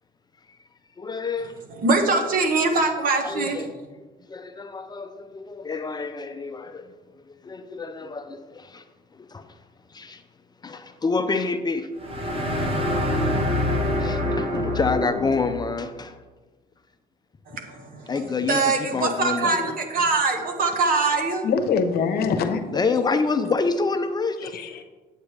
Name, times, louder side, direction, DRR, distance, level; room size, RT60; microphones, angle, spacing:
voice 1, 1.0-1.5 3.2-3.7 4.3-6.9 7.4-8.8 9.3-9.4 9.9-10.2 10.6-11.9 12.6-12.7 13.9-16.1 18.1-19.5 22.7-24.6, left 4 dB, 25° left, 8 dB, 0.5 m, -27 dB
voice 2, 1.8-3.7 17.5-18.0 18.5-21.4, right 3 dB, 55° right, 4 dB, 1.4 m, -23 dB
sound 1, 12.0-15.7, left 1 dB, 30° right, 1.3 m, -25 dB
voice 3, 21.4-22.6 23.0-23.1 24.4-24.8, left 5 dB, 65° left, 7 dB, 0.9 m, -25 dB
8.8 x 8.1 x 3.3 m, 1.3 s
cardioid pair, 110°, 17 cm